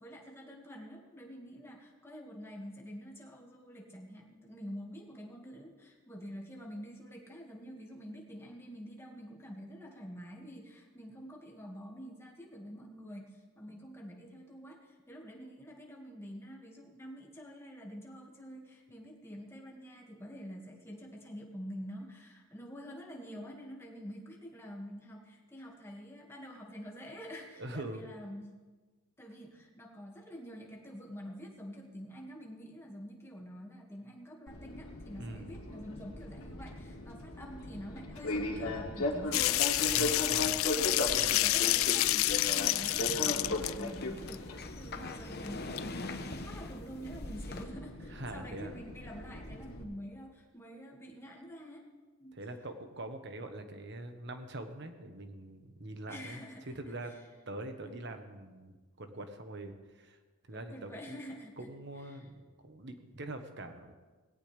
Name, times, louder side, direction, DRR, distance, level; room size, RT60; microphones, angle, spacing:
voice 1, 0.0-28.5 29.2-51.9 52.2-52.4 56.1-56.8 57.1-57.2 57.8-58.0 60.5-61.7 62.1-62.3, equal, 10° left, -1 dB, 2.0 m, -47 dB
voice 2, 27.6-28.0 35.2-35.6 39.8-40.5 48.1-48.7 52.3-57.1 57.5-60.2 60.5-61.2 61.6-63.9, right 1 dB, 55° right, 7 dB, 1.3 m, -43 dB
Fixed-wing aircraft airplane, 34.5-49.8, left 1 dB, 90° left, 2.2 m, -38 dB
sound 1, 39.3-43.8 44.3-44.4 45.5-45.6 45.8-45.9, left 17 dB, 75° left, 0.4 m, -29 dB
sound 2, 42.3-47.6, left 3 dB, 50° left, 1.0 m, -44 dB
18.5 x 17.0 x 3.5 m, 1.3 s
head